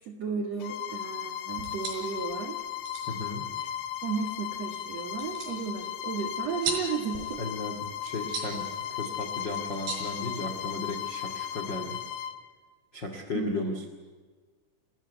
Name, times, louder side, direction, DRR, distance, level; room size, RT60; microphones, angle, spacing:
voice 1, 0.0-2.6 4.0-7.4 13.3-13.8, right 6 dB, 65° right, 4 dB, 1.6 m, -34 dB
Bowed string instrument, 0.6-12.4, left 10 dB, 70° left, 3.5 m, -36 dB
sound 1, 1.5-11.0, right 4 dB, 85° right, 7.7 m, -41 dB
voice 2, 3.1-3.4 7.4-12.0 12.9-13.9, left 2 dB, 50° left, 4 dB, 1.3 m, -35 dB
30.0 x 14.0 x 9.3 m, 1.4 s
omnidirectional pair, 6.0 m